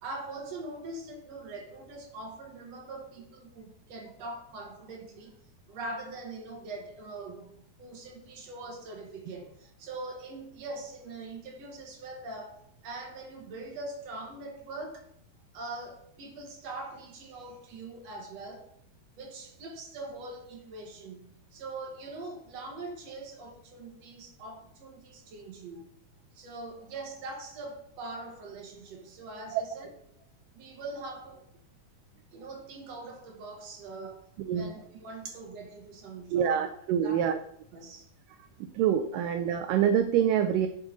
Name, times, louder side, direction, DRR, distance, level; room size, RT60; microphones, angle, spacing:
voice 1, 0.0-5.4 5.7-15.1 15.5-18.7 19.2-25.9 26.3-29.9 30.2-30.3 30.5-31.5 32.3-36.7 37.0-37.2 37.7-38.1 38.4-38.5, right 2 dB, 55° right, 2.0 m, -42 dB
voice 2, 34.4-34.7 36.3-37.4 38.7-40.7, right 9 dB, 85° right, 1.9 m, -26 dB
11.0 x 7.3 x 3.8 m
omnidirectional pair, 4.4 m